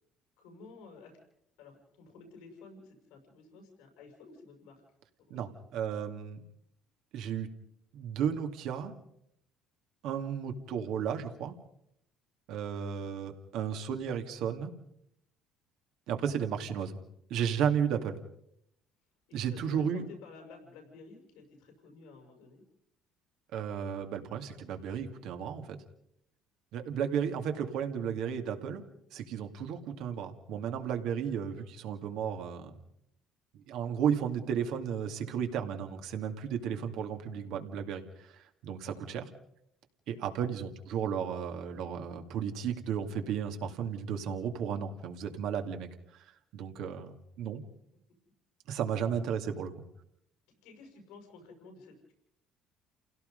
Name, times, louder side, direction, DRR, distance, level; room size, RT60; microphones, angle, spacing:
voice 1, 0.4-1.2 1.6-4.8 5.3-5.9 12.7-13.1 19.3-22.6 38.9-39.2 40.1-40.5 50.6-52.1, left 4 dB, 85° left, 3 dB, 6.3 m, -53 dB
voice 2, 5.3-6.4 7.1-7.5 7.9-8.9 10.0-11.6 12.5-14.7 16.1-17.0 17.3-18.2 19.3-20.0 23.5-25.8 26.7-28.8 29.1-32.7 33.7-39.2 40.1-46.2 46.5-47.6 48.7-49.7, right 8 dB, 70° right, 5 dB, 2.5 m, -34 dB
29.0 x 17.0 x 5.4 m, 0.75 s
supercardioid pair, 80°, 0 cm